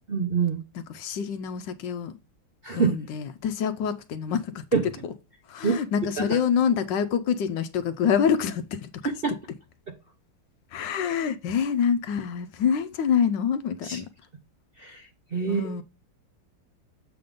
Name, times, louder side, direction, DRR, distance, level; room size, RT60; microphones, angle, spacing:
voice 1, 0.1-0.6 2.6-2.9 4.7-4.8 5.6-5.8 6.2-6.4 9.0-9.3 9.9-10.0 13.8-14.0 14.8-15.8, right 5 dB, 75° right, 0.5 m, -26 dB
voice 2, 0.9-2.2 2.7-4.6 5.5-9.0 10.7-14.1 15.5-15.8, left 7 dB, 70° left, 1.2 m, -26 dB
7.6 x 3.7 x 5.1 m
omnidirectional pair, 2.3 m